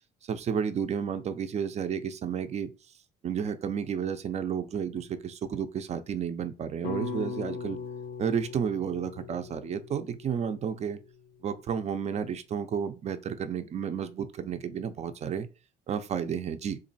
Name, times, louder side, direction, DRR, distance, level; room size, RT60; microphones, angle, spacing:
voice 1, 0.2-2.7 3.2-7.8 8.2-11.0 11.4-15.5 15.9-16.8, right 7 dB, 40° right, 0.5 m, -32 dB
sound 1, 6.8-11.1, left 4 dB, 80° left, 0.7 m, -39 dB
3.0 x 2.6 x 4.0 m
cardioid pair, 110°, 17 cm